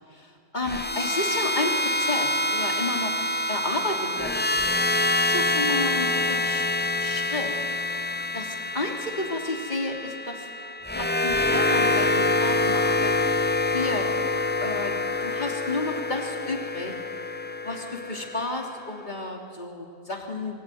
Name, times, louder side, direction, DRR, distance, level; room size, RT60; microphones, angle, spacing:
voice 1, 0.5-3.2 3.5-4.6 5.0-6.7 7.0-7.5 8.3-8.4 8.7-10.5 10.9-13.1 13.7-14.1 14.6-14.9 15.2-16.9 17.6-20.6, left 2 dB, 35° left, 2 dB, 3.4 m, -31 dB
sound 1, 0.6-18.8, left 2 dB, 15° left, 0.3 m, -26 dB
25.5 x 24.0 x 9.4 m, 2.3 s
omnidirectional pair, 1.3 m